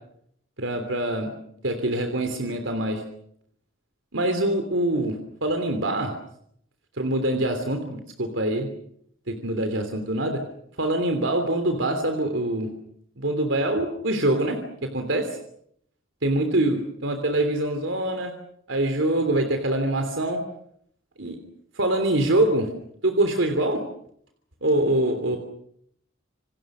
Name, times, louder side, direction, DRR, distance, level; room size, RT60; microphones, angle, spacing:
voice 1, 0.6-1.3 1.6-3.0 4.1-5.2 5.4-6.1 7.0-8.7 9.3-10.4 10.8-12.7 13.2-15.4 16.2-18.3 18.7-20.4 21.2-21.4 21.7-22.7 23.0-23.8 24.6-25.4, right 1 dB, 80° right, 6 dB, 3.1 m, -24 dB
28.0 x 27.0 x 6.3 m, 0.71 s
head